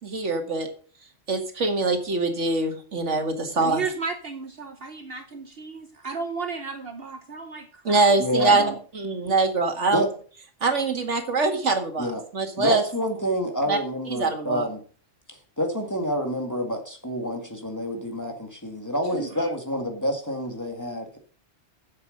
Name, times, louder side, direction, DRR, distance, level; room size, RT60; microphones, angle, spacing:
voice 1, 0.0-0.7 1.3-3.8 7.8-8.6 9.0-10.1 10.6-12.1 12.3-12.8 13.7-13.8 14.1-14.7, right 3 dB, 85° right, 5 dB, 2.2 m, -23 dB
voice 2, 3.6-8.1 8.4-8.7 19.1-19.5, right 4 dB, 55° right, 7 dB, 1.2 m, -34 dB
voice 3, 8.2-8.7 9.9-10.1 12.0-12.2 12.6-14.8 15.3-21.2, equal, 15° left, 4 dB, 2.0 m, -28 dB
10.5 x 7.7 x 6.5 m, 0.42 s
omnidirectional pair, 1.2 m